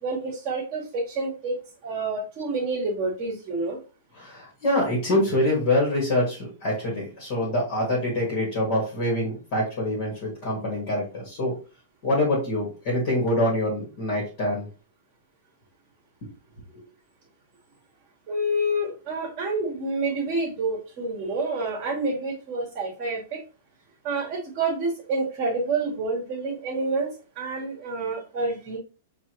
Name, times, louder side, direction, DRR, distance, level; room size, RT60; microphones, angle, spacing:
voice 1, 0.0-1.6 1.8-3.8 18.3-23.4 24.0-27.1 27.3-28.8, right 2 dB, 30° right, -4 dB, 1.4 m, -28 dB
voice 2, 4.2-11.5 12.0-14.7, left 1 dB, 40° left, -3 dB, 1.8 m, -25 dB
4.7 x 2.8 x 3.0 m, 0.35 s
supercardioid pair, 160°, 0 cm